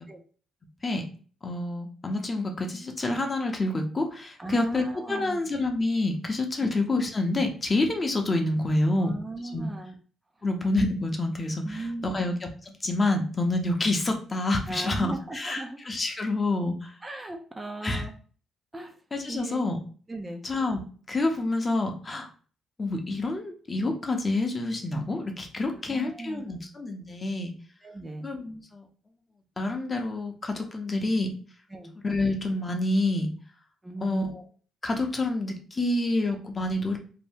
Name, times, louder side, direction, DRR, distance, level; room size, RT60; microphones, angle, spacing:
voice 1, 1.4-9.1 9.5-9.7 10.4-17.0 17.8-18.0 19.1-19.8 20.4-20.8 21.1-22.3 22.8-27.5 28.2-28.8 29.6-31.3 32.0-33.3 34.0-34.4 34.8-37.0, left 2 dB, 30° left, 4 dB, 0.6 m, -28 dB
voice 2, 4.4-5.4 6.6-6.7 8.9-10.0 11.6-12.2 14.7-15.8 17.0-18.1 18.7-18.9 19.3-19.7 20.1-20.5 25.7-26.7 27.8-28.3 31.7-31.9 33.8-34.3, right 2 dB, 20° right, 4 dB, 0.4 m, -37 dB
2.7 x 2.1 x 3.4 m, 0.42 s
cardioid pair, 90°, 0 cm